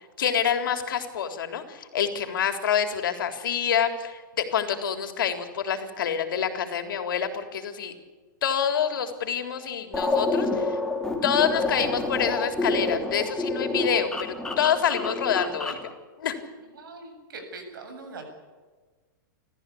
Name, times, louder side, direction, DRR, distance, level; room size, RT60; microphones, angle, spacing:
voice 1, 0.2-7.9 8.4-10.8 11.2-15.8 16.2-16.4, left 8 dB, 85° left, 7 dB, 3.6 m, -27 dB
sound 1, 9.9-15.9, left 2 dB, 5° left, 3.2 m, -28 dB
voice 2, 16.7-18.3, right 3 dB, 85° right, 5 dB, 8.0 m, -41 dB
29.0 x 14.5 x 8.6 m, 1.4 s
hypercardioid pair, 140°, 11 cm